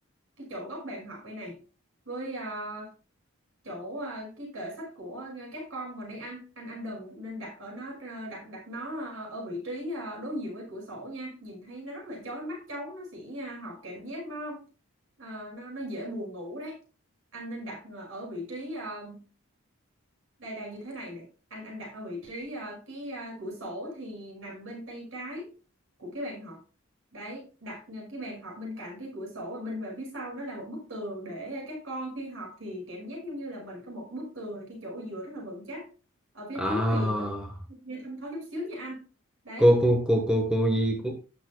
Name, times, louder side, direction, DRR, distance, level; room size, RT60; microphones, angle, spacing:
voice 1, 0.4-1.6 2.1-2.9 3.6-14.6 15.2-16.8 17.3-19.2 20.4-21.3 21.5-25.5 26.0-26.6 27.1-35.9 36.3-37.3 37.8-39.0 39.4-39.7, equal, 65° right, 5.8 m, -38 dB
voice 2, 36.6-37.5 39.6-41.1, equal, 5° right, 1.2 m, -23 dB
17.0 x 6.6 x 2.2 m
head